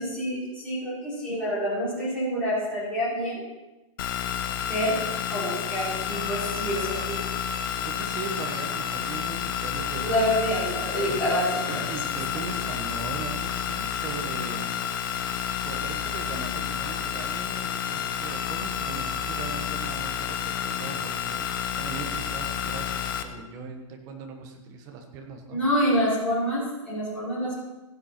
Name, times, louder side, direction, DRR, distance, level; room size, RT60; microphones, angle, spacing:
voice 1, 0.0-3.4 4.7-4.9 5.3-7.2 10.0-11.5 12.3-12.4 25.5-27.6, equal, 5° left, -12 dB, 5.3 m, -27 dB
sound 1, 4.0-23.2, left 9 dB, 40° left, 0.8 m, -30 dB
voice 2, 7.8-10.3 11.1-11.3 11.7-14.8 15.6-17.6 17.9-25.6, right 5 dB, 20° right, 3 dB, 1.2 m, -39 dB
16.5 x 8.8 x 4.4 m, 1.0 s
hypercardioid pair, 175°, 18 cm